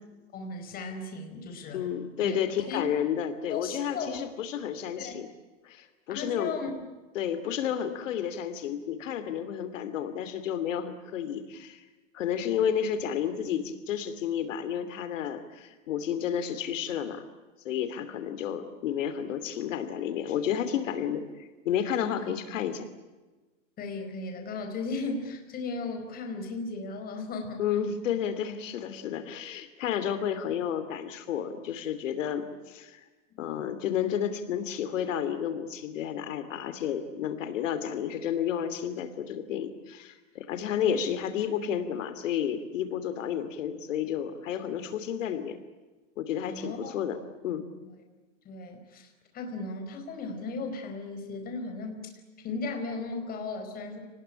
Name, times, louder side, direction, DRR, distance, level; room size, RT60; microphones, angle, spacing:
voice 1, 0.3-1.8 2.2-2.4 2.7-2.8 3.5-4.2 5.0-5.1 6.1-6.7 22.2-22.3 23.8-27.6 33.5-33.7 40.8-41.0 46.5-46.9 47.8-47.9 48.4-49.1 49.3-52.1 52.4-54.0, left 3 dB, 25° left, 4 dB, 4.6 m, -36 dB
voice 2, 1.7-5.3 5.6-6.6 7.1-11.8 12.1-17.3 17.6-22.8 27.6-33.0 33.4-45.6 46.2-47.2 47.4-47.6, left 9 dB, 80° left, 10 dB, 2.8 m, -31 dB
28.0 x 20.0 x 10.0 m, 1.2 s
supercardioid pair, 160°, 38 cm